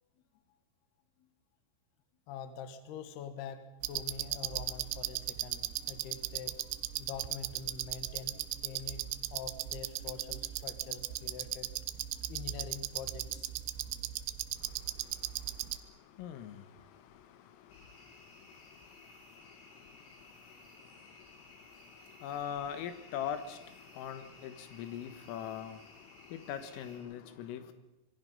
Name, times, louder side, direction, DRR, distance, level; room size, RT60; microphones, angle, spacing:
voice 1, 2.3-6.5 7.0-9.1 9.3-11.7 12.3-13.5 18.1-18.3, left 7 dB, 65° left, 10 dB, 3.1 m, -45 dB
sound 1, 3.8-15.8, right 14 dB, 80° right, 2.5 m, -37 dB
voice 2, 16.2-16.7 22.2-23.6 23.9-25.8 26.3-27.7, left 9 dB, 85° left, 10 dB, 3.9 m, -40 dB
sound 2, 17.7-27.0, left 1 dB, 40° left, 7.6 m, -58 dB
26.0 x 22.0 x 5.4 m, 0.99 s
omnidirectional pair, 5.9 m